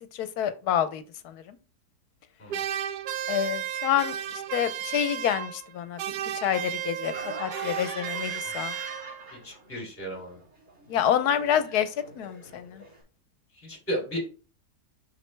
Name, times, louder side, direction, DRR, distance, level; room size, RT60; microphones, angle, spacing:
voice 1, 0.1-1.6 3.3-6.0 6.3-7.1 7.4-8.8 10.9-12.8, left 9 dB, 75° left, 12 dB, 1.1 m, -28 dB
sound 1, 2.5-5.7 6.0-9.4, right 10 dB, 85° right, 1.2 m, -34 dB
Laughter, 7.0-9.8 10.1-13.0, equal, 50° right, 3.1 m, -43 dB
voice 2, 9.4-10.4 13.6-14.2, equal, 10° left, -2 dB, 2.7 m, -34 dB
6.0 x 5.7 x 3.3 m, 0.36 s
omnidirectional pair, 1.7 m